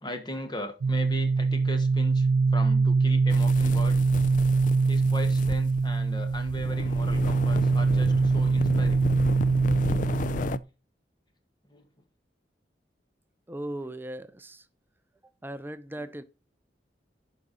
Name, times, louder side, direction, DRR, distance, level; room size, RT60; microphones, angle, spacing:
voice 1, 0.0-4.0 4.9-9.1 11.7-11.9 16.0-16.1, left 1 dB, 25° left, 1.4 m, -38 dB
sound 1, 0.8-10.6, right 4 dB, 90° right, 0.4 m, -23 dB
sound 2, 3.3-10.6, left 4 dB, 45° left, 0.4 m, -34 dB
voice 2, 13.5-14.7 15.4-16.2, right 1 dB, 10° right, 0.5 m, -37 dB
11.0 x 4.9 x 4.0 m
head